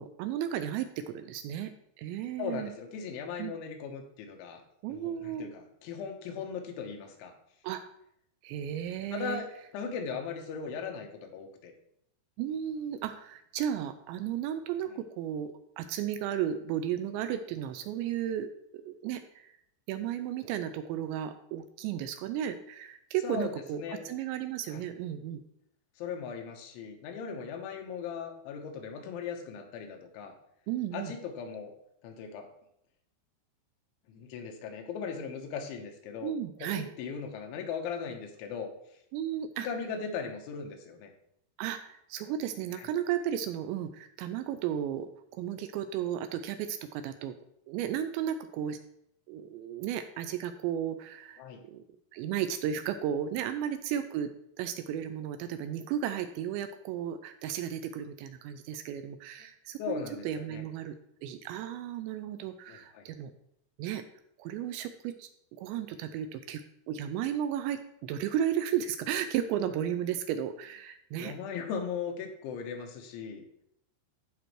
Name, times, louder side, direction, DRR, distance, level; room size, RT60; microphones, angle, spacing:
voice 1, 0.0-2.7 3.4-3.5 4.8-5.5 7.6-7.8 8.4-9.4 12.4-18.5 18.7-19.5 19.9-25.4 30.7-31.1 36.2-36.9 39.1-39.7 41.6-47.4 47.7-48.8 49.3-51.4 51.7-51.8 52.1-54.3 54.6-61.0 61.2-63.3 63.8-64.0 64.4-65.3 65.6-71.4, right 10 dB, 85° right, 9 dB, 2.7 m, -34 dB
voice 2, 2.4-4.6 4.9-7.3 9.1-11.7 23.2-24.0 24.7-24.9 26.0-30.3 30.9-31.7 32.0-32.5 34.1-36.3 36.6-38.7 39.6-41.1 42.7-42.8 51.4-51.6 59.8-60.6 62.7-63.0 71.2-73.4, left 6 dB, 80° left, 4 dB, 3.3 m, -38 dB
15.0 x 5.1 x 3.1 m, 0.74 s
omnidirectional pair, 5.5 m